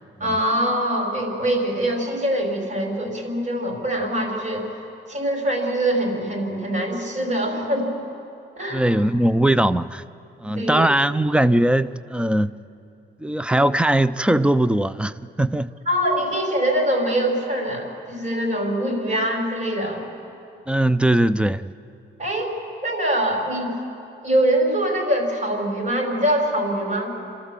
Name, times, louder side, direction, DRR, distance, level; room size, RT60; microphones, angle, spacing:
voice 1, 0.2-4.6 5.1-7.9 8.6-8.9 10.6-10.9 15.9-20.0 22.2-22.5 22.8-23.8 24.2-27.1, right 1 dB, 40° right, 5.6 m, -23 dB
voice 2, 8.7-10.0 10.4-12.5 13.2-15.7 20.7-21.7, right 1 dB, 5° right, 0.5 m, -20 dB
28.0 x 13.0 x 7.5 m
cardioid pair, 90°, 20 cm